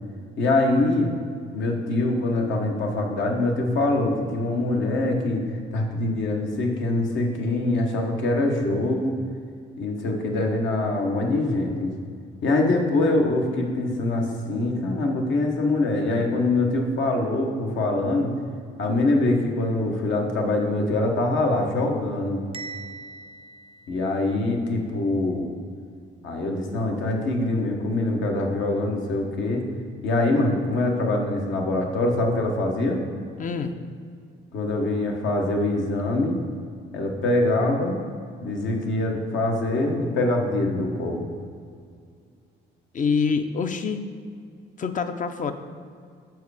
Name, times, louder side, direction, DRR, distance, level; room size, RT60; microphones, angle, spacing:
voice 1, 0.4-1.1 1.5-5.4 5.7-9.2 9.8-11.9 12.4-18.3 18.8-22.4 23.9-25.5 26.2-29.6 30.0-33.0 34.5-36.4 36.9-38.0 38.4-41.3, left 2 dB, 75° left, 1 dB, 1.1 m, -24 dB
Bell, 22.5-24.6, right 4 dB, 30° right, 0.5 m, -41 dB
voice 2, 33.4-33.7 42.9-44.1 44.8-45.5, left 5 dB, 40° left, 8 dB, 0.5 m, -25 dB
7.1 x 4.6 x 4.8 m, 2.2 s
cardioid pair, 90°, 20 cm